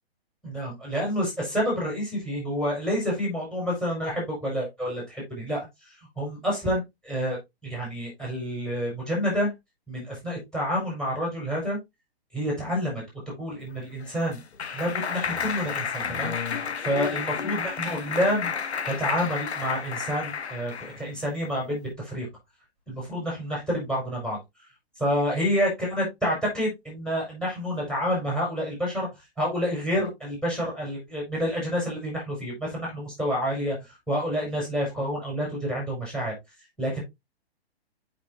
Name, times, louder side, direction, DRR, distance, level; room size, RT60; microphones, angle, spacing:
voice 1, 0.4-7.4 7.6-9.5 9.9-11.8 12.3-14.4 14.7-16.3 16.8-18.5 18.9-22.3 22.9-24.4 25.0-29.1 29.4-36.3 36.8-37.0, equal, ahead, -1 dB, 4.9 m, -28 dB
Clapping, 13.8-21.0, left 6 dB, 85° left, 1.0 m, -31 dB
7.4 x 5.9 x 2.6 m, 0.19 s
hypercardioid pair, 140°, 32 cm